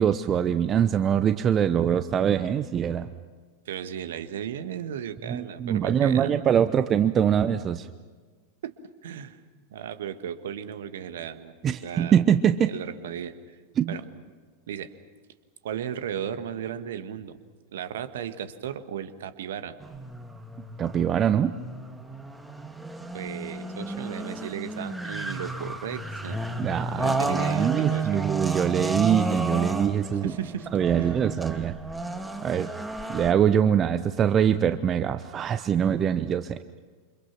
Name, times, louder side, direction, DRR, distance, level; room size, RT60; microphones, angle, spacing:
voice 1, 0.0-3.1 5.3-7.9 11.6-12.7 13.8-14.0 20.8-21.6 26.6-30.3 30.7-31.8 32.4-32.7 33.1-36.6, right 8 dB, 25° right, 11 dB, 0.8 m, -23 dB
voice 2, 3.6-6.3 8.6-8.7 9.0-9.4 9.7-11.5 11.8-12.2 12.7-13.3 13.9-14.0 14.7-14.9 15.6-17.4 17.7-19.7 23.1-26.4 27.0-28.2 30.2-30.7 31.0-31.2, right 9 dB, 60° right, 11 dB, 1.6 m, -35 dB
sound 1, 19.8-33.3, right 2 dB, 5° right, 2.1 m, -32 dB
28.5 x 26.0 x 6.0 m, 1.5 s
figure-of-eight pair, 90°, 0 cm